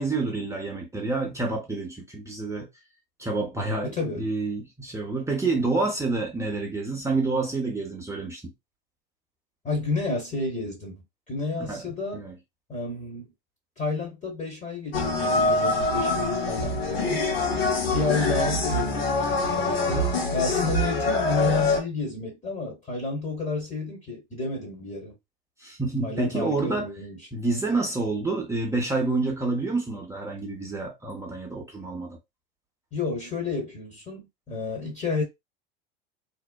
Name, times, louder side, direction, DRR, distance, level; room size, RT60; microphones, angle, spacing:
voice 1, 0.0-2.7 3.2-8.5 11.6-11.8 12.1-12.4 25.6-26.9 27.3-32.2, right 3 dB, 10° right, 0.7 m, -28 dB
voice 2, 3.8-4.3 9.6-11.0 11.3-12.3 12.7-13.3 13.8-17.2 17.9-20.1 20.3-25.1 26.0-27.5 32.9-35.2, left 3 dB, 25° left, 1.0 m, -31 dB
sound 1, 14.9-21.8, left 2 dB, 80° left, 0.9 m, -25 dB
2.7 x 2.0 x 2.2 m
hypercardioid pair, 85°, 29 cm